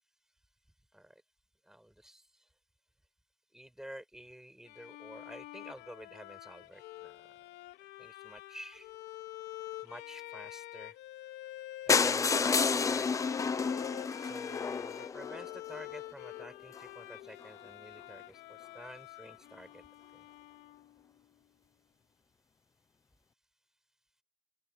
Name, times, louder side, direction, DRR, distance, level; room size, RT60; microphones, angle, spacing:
voice 1, 1.7-2.4 3.5-7.5 8.0-8.9 9.8-10.9 11.9-13.2 14.2-19.8 20.2-20.3, right 1 dB, 5° right, 7.2 m, -50 dB
Bowed string instrument, 4.7-21.2, left 16 dB, 75° left, 3.0 m, -47 dB
sound 1, 11.9-15.8 16.4-16.5 16.8-16.9 17.1-17.2 17.4-17.5, left 5 dB, 20° left, 0.6 m, -30 dB
open air
cardioid pair, 160°, 18 cm